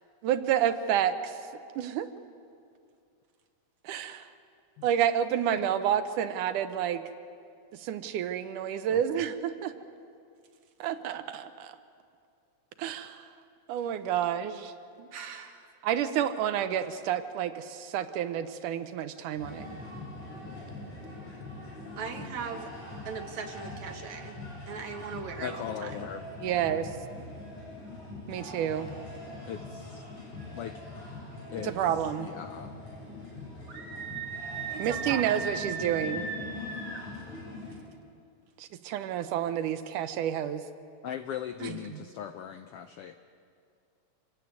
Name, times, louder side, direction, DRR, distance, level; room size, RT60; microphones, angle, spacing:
voice 1, 0.2-1.4 1.8-2.1 3.8-4.3 4.8-7.0 7.7-9.7 10.8-11.8 12.8-13.3 13.7-14.7 15.0-15.1 15.8-19.7 26.4-26.9 28.3-28.9 31.6-32.3 34.8-36.3 38.6-40.6, right 10 dB, 85° right, 10 dB, 2.4 m, -29 dB
voice 2, 8.9-9.2 25.4-26.2 29.5-30.0 30.5-30.8 31.5-32.7 41.0-43.2, left 9 dB, 85° left, 9 dB, 1.3 m, -39 dB
voice 3, 15.1-15.7 22.0-22.7 23.1-24.4 24.7-26.1 34.7-35.4 41.6-42.1, right 6 dB, 65° right, 5 dB, 2.8 m, -39 dB
sound 1, 19.3-37.7, left 2 dB, 55° left, 9.3 m, -43 dB
Screaming, 33.7-37.0, right 5 dB, 40° right, 3.3 m, -37 dB
27.0 x 16.0 x 9.5 m, 2.4 s
omnidirectional pair, 3.6 m